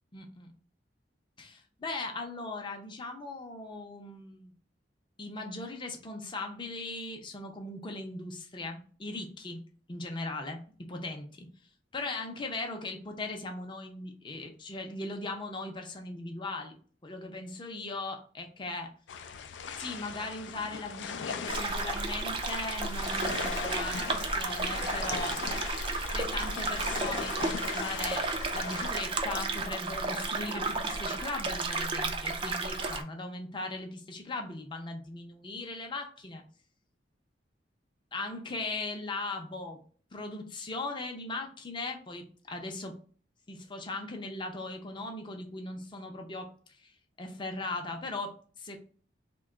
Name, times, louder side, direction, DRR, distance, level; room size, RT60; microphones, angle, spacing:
voice 1, 0.1-0.5 1.4-4.5 5.2-9.6 9.9-11.5 11.9-16.8 17.0-18.9 19.8-25.4 26.1-28.2 28.5-36.4 38.1-39.8 40.1-43.0 43.5-46.5 46.8-46.9 47.2-48.8, left 2 dB, 25° left, 3 dB, 0.5 m, -38 dB
sound 1, 19.1-29.0, left 6 dB, 80° left, 0.4 m, -39 dB
sound 2, 21.5-33.0, right 3 dB, 30° right, 0.4 m, -33 dB
2.9 x 2.2 x 3.7 m, 0.43 s
head